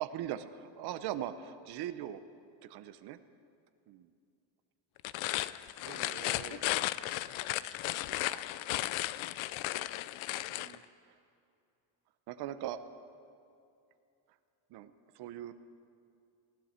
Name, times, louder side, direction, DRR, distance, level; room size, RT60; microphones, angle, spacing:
voice 1, 0.0-2.2 2.6-3.2 3.9-4.1 5.6-6.6 7.4-7.9 8.1-8.6 10.3-10.8 12.3-12.8 14.7-15.5, right 12 dB, 60° right, 11 dB, 0.7 m, -41 dB
sound 1, 5.0-10.8, left 16 dB, 85° left, 0.6 m, -35 dB
19.5 x 15.5 x 4.4 m, 2.6 s
cardioid pair, 160°, 45 cm